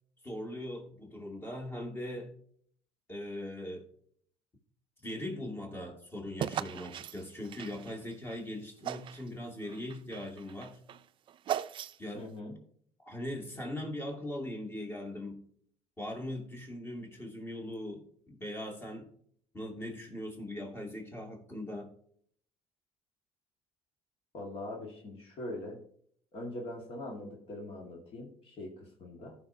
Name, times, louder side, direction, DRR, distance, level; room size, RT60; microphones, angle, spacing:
voice 1, 0.2-2.3 3.1-3.9 5.0-10.8 12.0-12.3 13.0-15.5 16.0-19.1 19.5-21.9, left 1 dB, 20° left, 1 dB, 2.5 m, -40 dB
sound 1, 6.4-8.4 8.8-9.3 9.6-12.2, right 10 dB, 50° right, 0.4 m, -38 dB
voice 2, 12.1-12.6 24.3-25.8 26.3-29.3, left 1 dB, 55° left, 0 dB, 1.9 m, -42 dB
14.5 x 5.7 x 2.8 m, 0.62 s
cardioid pair, 95°, 11 cm